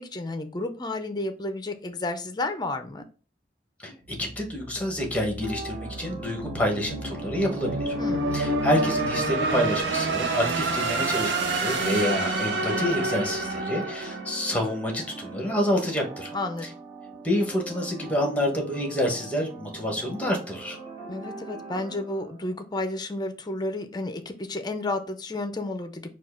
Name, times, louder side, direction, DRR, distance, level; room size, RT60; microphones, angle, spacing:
voice 1, 0.0-3.0 8.0-8.4 16.3-16.6 21.1-26.1, left 2 dB, 25° left, 7 dB, 0.5 m, -31 dB
voice 2, 3.8-7.9 8.3-16.3 17.2-20.8, equal, 10° left, 1 dB, 1.1 m, -28 dB
sound 1, 4.1-15.1, right 2 dB, 90° right, 0.8 m, -29 dB
sound 2, 5.4-22.6, right 3 dB, 30° right, 1.8 m, -42 dB
4.5 x 2.4 x 4.3 m, 0.36 s
head